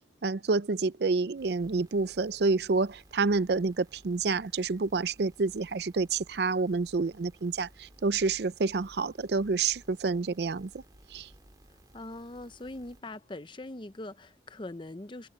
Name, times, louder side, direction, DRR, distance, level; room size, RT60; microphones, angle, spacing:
voice 1, 0.2-10.7 11.1-11.3, right 4 dB, 65° right, 0.5 m, -28 dB
sound 1, 1.4-13.0, right 1 dB, 20° right, 2.7 m, -58 dB
voice 2, 11.9-15.3, left 2 dB, 25° left, 0.7 m, -42 dB
head